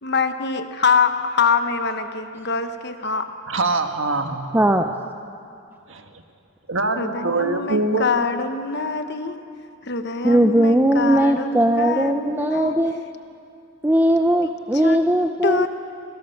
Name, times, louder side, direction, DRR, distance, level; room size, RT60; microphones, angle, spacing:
voice 1, 0.0-3.2 7.0-9.4 9.8-12.8 14.4-14.5 14.8-15.0 15.4-15.7, left 5 dB, 55° left, 8 dB, 1.1 m, -24 dB
voice 2, 3.5-4.6 5.9-6.0 6.7-8.0, right 3 dB, 65° right, 6 dB, 1.6 m, -23 dB
voice 3, 4.5-4.9 10.2-13.0 13.8-15.7, right 1 dB, 10° right, 6 dB, 0.6 m, -18 dB
27.0 x 17.0 x 7.1 m, 2.5 s
head